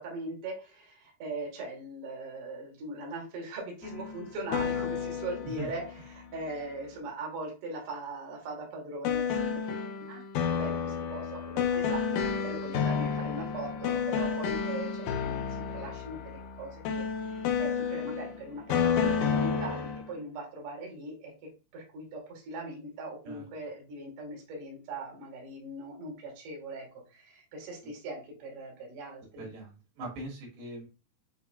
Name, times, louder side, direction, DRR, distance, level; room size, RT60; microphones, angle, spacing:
voice 1, 0.0-9.6 10.0-15.4 15.7-29.5, right 2 dB, 50° right, -1 dB, 1.9 m, -40 dB
sound 1, 3.8-6.8 9.0-20.1, left 6 dB, 85° left, 1.7 m, -31 dB
voice 2, 29.4-30.9, right 2 dB, 75° right, -3 dB, 3.7 m, -41 dB
7.3 x 2.9 x 2.3 m, 0.32 s
omnidirectional pair, 4.3 m